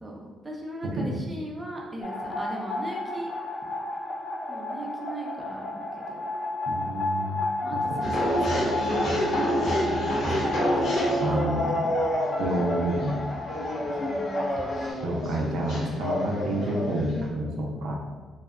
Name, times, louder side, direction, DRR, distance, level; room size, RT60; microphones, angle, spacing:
voice 1, 0.0-3.3 4.5-6.2 7.6-10.9 11.7-11.9 13.9-14.4, right 1 dB, 20° right, -2 dB, 0.5 m, -38 dB
sound 1, 2.0-14.9, left 2 dB, 35° left, 0.3 m, -32 dB
voice 2, 6.7-7.4 7.7-7.8 11.2-11.7 12.4-13.2 15.0-18.0, right 1 dB, 80° right, -1 dB, 0.4 m, -29 dB
sound 2, 8.0-17.3, equal, 70° left, 0.8 m, -28 dB
2.7 x 2.1 x 2.4 m, 1.3 s
cardioid pair, 90°, 0 cm